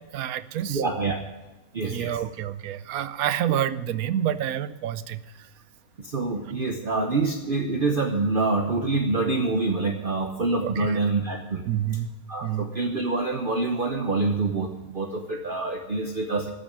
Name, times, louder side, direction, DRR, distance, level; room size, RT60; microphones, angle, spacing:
voice 1, 0.1-0.8 1.8-5.5 10.6-11.0 11.7-12.1 12.4-12.7, right 10 dB, 85° right, 14 dB, 1.1 m, -28 dB
voice 2, 0.7-1.2 1.7-2.2 6.0-11.6 12.3-16.5, right 3 dB, 40° right, 3 dB, 1.0 m, -26 dB
13.5 x 6.9 x 8.7 m, 1.1 s
omnidirectional pair, 1.5 m